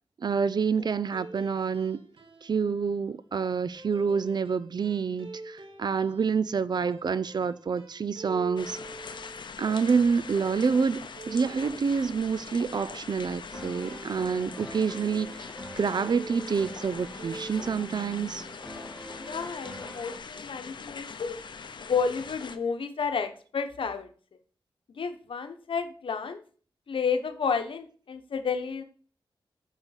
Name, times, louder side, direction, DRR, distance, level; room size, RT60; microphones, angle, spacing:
voice 1, 0.2-2.0 2.4-8.8 9.6-15.5 15.8-18.4, right 5 dB, 50° right, 0.5 m, -27 dB
sound 1, 0.9-2.8 3.7-14.9 15.9-18.9 19.2-19.7, right 2 dB, 80° right, 1.7 m, -47 dB
sound 2, 8.6-22.6, left 5 dB, 60° left, 0.7 m, -42 dB
sound 3, 13.5-20.2, equal, 5° right, 2.2 m, -45 dB
voice 2, 19.1-21.4 21.8-24.1 24.9-26.4 26.9-28.8, left 5 dB, 75° left, 1.0 m, -31 dB
8.9 x 3.9 x 6.3 m
wide cardioid pair, 115°, 9 cm